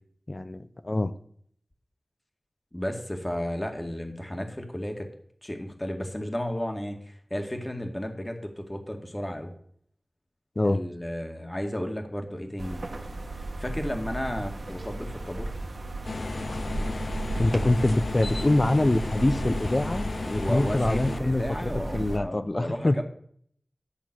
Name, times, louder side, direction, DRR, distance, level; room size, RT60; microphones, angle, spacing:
voice 1, 0.3-1.1 10.6-10.8 17.4-23.0, left 1 dB, 40° left, 11 dB, 0.9 m, -25 dB
voice 2, 2.7-5.1 5.4-9.5 10.6-12.8 13.4-15.5 20.4-23.0, left 1 dB, 25° left, 4 dB, 2.0 m, -33 dB
sound 1, 12.6-22.2, right 2 dB, 80° right, 1.5 m, -35 dB
sound 2, 16.0-21.2, left 3 dB, 80° left, 0.4 m, -33 dB
11.5 x 6.4 x 6.1 m, 0.62 s
wide cardioid pair, 45°, 0 cm